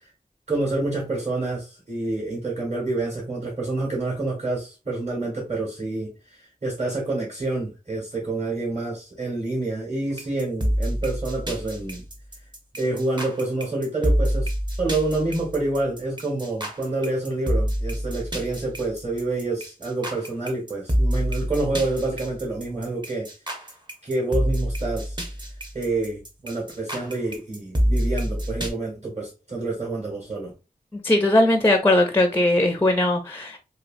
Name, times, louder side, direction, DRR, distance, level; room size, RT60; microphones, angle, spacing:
voice 1, 0.5-12.0 12.8-14.5 14.8-23.3 24.0-25.2 25.7-30.5, right 2 dB, 45° right, 1.6 m, -28 dB
sound 1, 10.2-28.7, equal, 30° right, 0.8 m, -27 dB
voice 2, 31.0-33.6, left 1 dB, 15° left, 0.4 m, -19 dB
3.0 x 2.8 x 2.5 m
wide cardioid pair, 70°, 16 cm